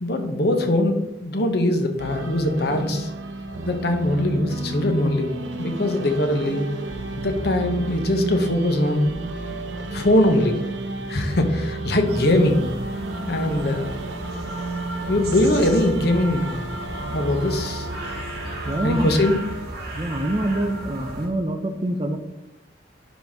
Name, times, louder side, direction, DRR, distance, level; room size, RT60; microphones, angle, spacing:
voice 1, 0.0-3.1 3.6-5.3 5.6-6.7 7.2-9.1 9.9-10.6 11.1-12.7 13.3-14.0 15.1-16.5 17.1-17.9 18.8-19.4, left 1 dB, 60° left, 5 dB, 1.0 m, -21 dB
sound 1, 2.0-19.1, right 2 dB, 80° right, 0.8 m, -32 dB
sound 2, 12.0-21.3, right 1 dB, 55° right, 2.2 m, -35 dB
voice 2, 18.7-19.2 19.9-22.2, right 1 dB, 25° right, 7 dB, 0.6 m, -25 dB
11.5 x 4.1 x 3.6 m, 0.92 s
head